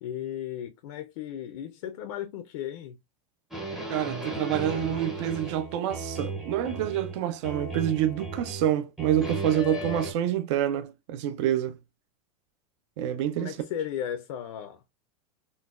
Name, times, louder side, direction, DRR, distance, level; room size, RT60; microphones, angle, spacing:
voice 1, 0.0-3.0 13.4-14.8, left 10 dB, 55° left, 0.5 m, -35 dB
sound 1, 3.5-7.2 7.4-8.7 9.0-10.1, right 2 dB, ahead, 0.5 m, -35 dB
voice 2, 3.9-11.8 13.0-13.6, right 11 dB, 50° right, 0.4 m, -27 dB
3.8 x 2.2 x 2.3 m
supercardioid pair, 170°, 19 cm